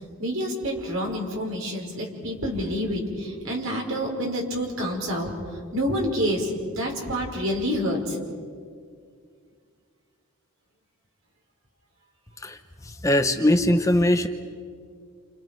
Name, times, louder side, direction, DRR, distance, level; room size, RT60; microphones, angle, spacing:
voice 1, 0.2-5.3 5.7-8.2, equal, 65° right, 0 dB, 5.5 m, -28 dB
voice 2, 12.4-14.3, left 1 dB, 15° left, 7 dB, 0.8 m, -21 dB
30.0 x 29.0 x 5.4 m, 2.1 s
head